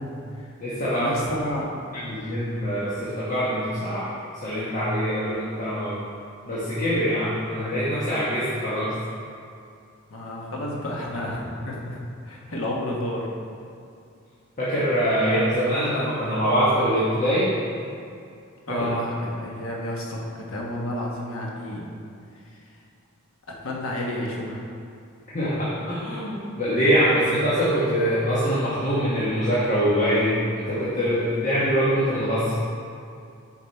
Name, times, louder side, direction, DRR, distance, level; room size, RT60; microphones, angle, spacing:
voice 1, 0.0-0.5 0.9-1.7 10.1-13.3 18.7-21.8 23.6-24.6, left 1 dB, 70° left, -2 dB, 1.2 m, -31 dB
voice 2, 0.6-1.1 1.9-6.0 6.4-8.9 14.6-17.5 18.7-18.9 25.3-32.6, equal, 40° left, -9 dB, 1.2 m, -24 dB
7.3 x 4.7 x 4.4 m, 2.4 s
head